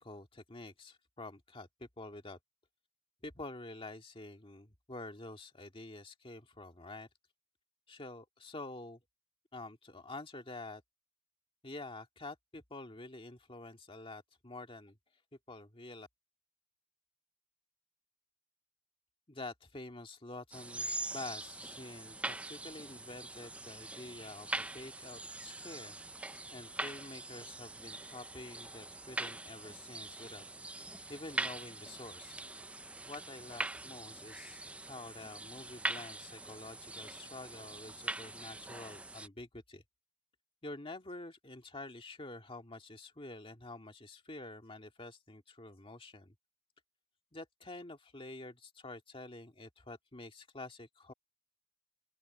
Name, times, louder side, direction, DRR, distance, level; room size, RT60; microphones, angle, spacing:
voice 1, 0.0-2.4 3.2-7.1 7.9-9.0 9.5-10.8 11.6-15.0 15.5-16.1 19.3-24.5 24.7-26.0 26.5-30.7 31.1-32.4 33.1-34.6 34.9-39.8 40.6-46.3 47.3-51.1, left 2 dB, 25° left, 1.9 m, -48 dB
sound 1, 20.5-39.3, right 2 dB, 5° right, 0.3 m, -43 dB
open air
head